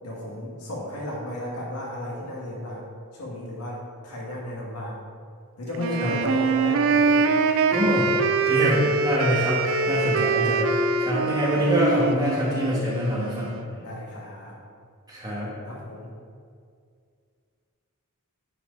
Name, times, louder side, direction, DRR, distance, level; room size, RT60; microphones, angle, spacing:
voice 1, 0.0-5.0 5.6-7.3 7.7-7.8 8.6-8.8 10.0-10.1 13.7-14.6 15.7-16.2, left 1 dB, 85° left, -4 dB, 1.9 m, -34 dB
Wind instrument woodwind instrument, 5.7-13.6, right 4 dB, 60° right, 0.5 m, -24 dB
voice 2, 7.7-8.2 8.4-13.5 15.1-15.5, equal, 20° right, -6 dB, 1.9 m, -25 dB
9.8 x 4.6 x 4.0 m, 2.2 s
head